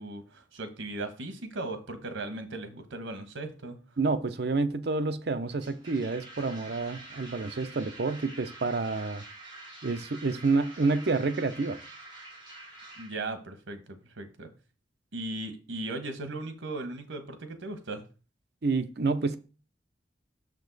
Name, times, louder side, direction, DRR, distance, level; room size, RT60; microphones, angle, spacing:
voice 1, 0.0-3.8 13.0-14.5 15.1-18.0, right 2 dB, 85° right, 1.1 m, -37 dB
voice 2, 4.0-9.2 9.8-11.8 18.6-19.4, right 3 dB, 60° right, 0.6 m, -28 dB
sound 1, 5.5-13.1, right 2 dB, 25° right, 3.0 m, -47 dB
6.3 x 5.2 x 3.9 m
head